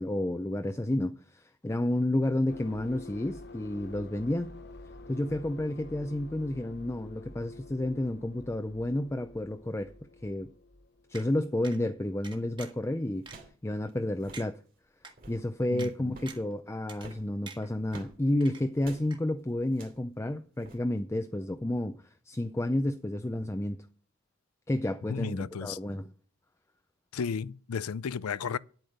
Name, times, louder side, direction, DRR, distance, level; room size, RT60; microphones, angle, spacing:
voice 1, 0.0-4.6 5.1-9.9 10.2-10.5 11.1-13.3 13.6-14.6 15.3-22.0 22.3-23.8 24.7-26.1, left 1 dB, 15° left, 0.5 m, -31 dB
sound 1, 2.5-12.0, left 2 dB, 50° left, 1.0 m, -49 dB
sound 2, 11.1-11.3 11.6-11.8 12.2-12.8 13.3-13.4 13.9-14.0 14.3-14.5 15.0-15.1 15.8-15.9 16.3-16.5 16.9-17.2 17.5-18.0 18.4-18.9 19.1-19.2, right 5 dB, 25° right, 1.6 m, -46 dB
sound 3, 12.5-12.6 13.2-13.6 13.9-14.0 14.1-14.5 15.0-15.5 16.1-16.4 16.9-18.2 18.8-19.1 19.7-20.0 20.6-20.8, right 2 dB, 40° right, 2.6 m, -50 dB
voice 2, 15.7-16.2 25.1-25.8 27.1-28.6, left 6 dB, 85° left, 0.5 m, -34 dB
9.6 x 8.7 x 6.6 m
head